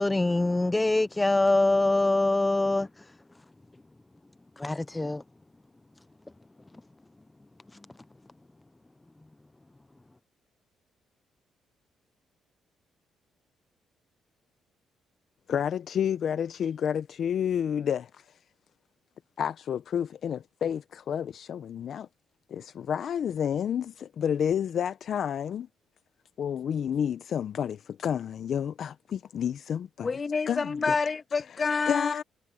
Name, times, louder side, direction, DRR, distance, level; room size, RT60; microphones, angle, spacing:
voice 1, 0.0-3.1 4.6-5.2, left 2 dB, 15° left, 0.4 m, -24 dB
voice 2, 15.5-18.4 19.4-22.1 22.5-25.7 26.4-30.1 30.5-31.0 31.9-32.2, left 8 dB, 60° left, 0.6 m, -30 dB
voice 3, 30.0-32.2, left 4 dB, 35° left, 2.2 m, -28 dB
cardioid pair, 90°, 0 cm